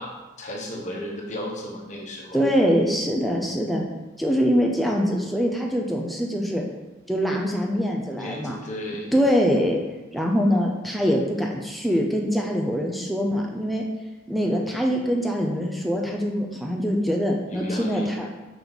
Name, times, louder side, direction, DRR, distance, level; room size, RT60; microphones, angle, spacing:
voice 1, 0.0-2.4 8.1-9.1 17.5-18.1, left 1 dB, 35° left, -1 dB, 1.1 m, -34 dB
voice 2, 2.3-3.8 4.2-6.6 7.1-8.6 9.1-9.8 10.1-13.9 14.3-18.3, equal, ahead, -1 dB, 0.6 m, -23 dB
6.0 x 5.3 x 4.0 m, 1.2 s
head